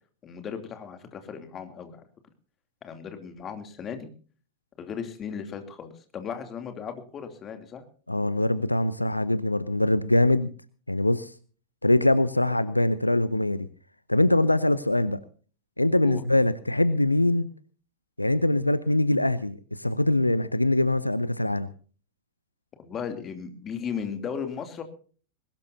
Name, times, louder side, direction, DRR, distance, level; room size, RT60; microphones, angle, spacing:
voice 1, 0.2-2.0 2.8-4.1 4.8-7.8 16.0-16.2 22.8-24.8, left 7 dB, 25° left, 7 dB, 2.8 m, -36 dB
voice 2, 8.1-10.5 10.9-11.3 11.8-13.7 14.1-15.2 15.8-17.5 18.2-21.7, left 1 dB, 85° left, 17 dB, 0.7 m, -23 dB
21.0 x 19.0 x 2.8 m, 0.40 s
figure-of-eight pair, 90°, 0 cm